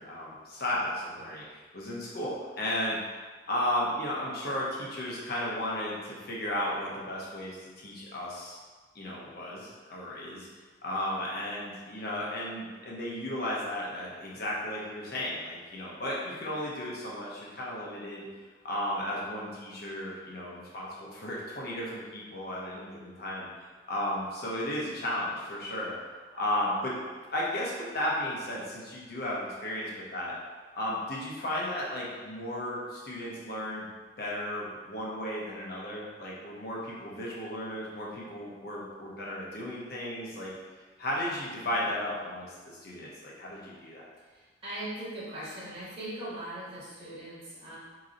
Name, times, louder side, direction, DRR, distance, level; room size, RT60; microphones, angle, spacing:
voice 1, 0.0-8.6 8.9-10.5 10.8-18.3 18.6-23.5 23.9-25.9 26.3-26.9 27.3-30.3 30.7-33.9 34.2-40.5 41.0-44.0, left 1 dB, 60° left, -5 dB, 0.9 m, -34 dB
voice 2, 44.3-47.8, right 1 dB, 30° right, -10 dB, 1.1 m, -40 dB
4.0 x 3.0 x 2.6 m, 1.4 s
head